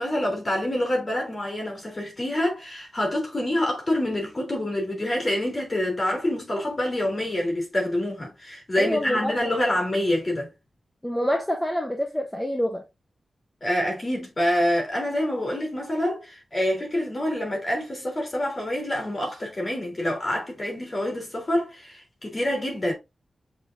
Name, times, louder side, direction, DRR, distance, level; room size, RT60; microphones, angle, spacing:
voice 1, 0.0-10.5 13.6-22.9, left 1 dB, 25° left, 3.5 m, -26 dB
voice 2, 8.8-9.3 11.0-12.8, equal, 5° left, 0.9 m, -26 dB
7.8 x 4.7 x 2.6 m
wide cardioid pair, 175°, 0 cm